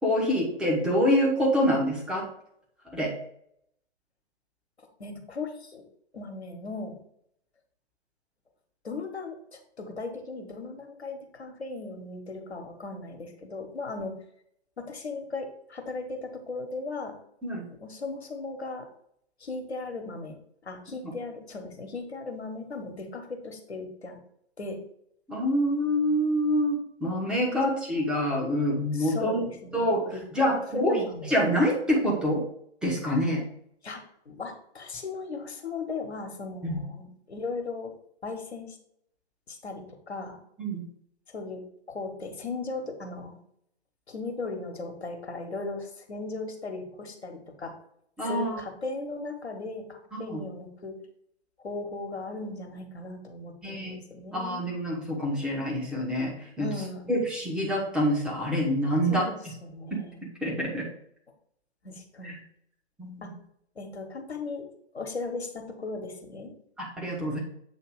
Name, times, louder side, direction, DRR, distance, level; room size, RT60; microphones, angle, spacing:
voice 1, 0.0-2.3 2.9-3.1 17.4-17.7 25.3-29.4 29.7-32.4 32.8-33.4 36.6-36.8 40.6-40.8 48.2-48.6 50.1-50.4 53.6-54.0 54.3-56.7 57.1-59.3 59.9-60.0 60.4-60.8 62.2-62.3 63.0-63.3 67.0-67.4, equal, 5° right, -4 dB, 1.1 m, -26 dB
voice 2, 5.0-5.8 6.1-7.0 8.8-14.1 14.8-17.1 17.8-18.9 19.4-20.3 20.6-24.2 24.6-24.8 28.9-30.2 30.5-31.3 33.8-37.9 38.2-38.8 39.5-40.4 41.3-41.6 41.9-43.4 44.1-47.7 48.2-51.0 51.6-54.7 56.6-57.1 59.1-59.3 59.6-60.2 61.8-62.4 63.2-63.3 63.7-64.6 64.9-66.5, left 3 dB, 75° left, 4 dB, 1.4 m, -37 dB
7.9 x 2.9 x 4.8 m, 0.72 s
figure-of-eight pair, 125°, 32 cm